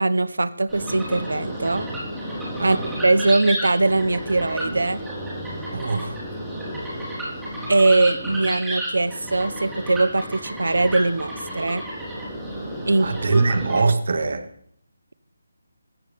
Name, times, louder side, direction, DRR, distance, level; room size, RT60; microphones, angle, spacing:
voice 1, 0.0-1.9 2.6-5.0 7.7-11.8 12.9-13.4, right 2 dB, 90° right, 14 dB, 1.0 m, -21 dB
sound 1, 0.7-13.8, right 1 dB, 5° right, 4.5 m, -32 dB
voice 2, 5.7-6.2 13.0-14.5, right 4 dB, 60° right, 7 dB, 2.1 m, -23 dB
17.5 x 14.5 x 3.7 m, 0.65 s
figure-of-eight pair, 165°, 0 cm